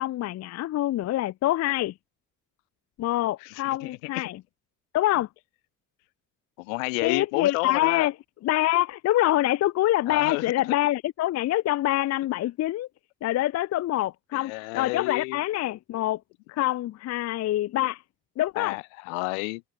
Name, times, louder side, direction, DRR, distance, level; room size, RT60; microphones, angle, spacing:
voice 1, 0.0-1.9 3.0-4.4 4.9-5.3 7.0-8.1 8.4-12.9 13.2-16.2 16.5-18.0 18.4-18.8, left 14 dB, 45° left, 0.5 m, -25 dB
voice 2, 3.4-4.1 6.6-8.1 10.1-10.8 14.3-15.4 18.5-19.6, left 32 dB, 85° left, 2.7 m, -31 dB
hypercardioid pair, 60°, 38 cm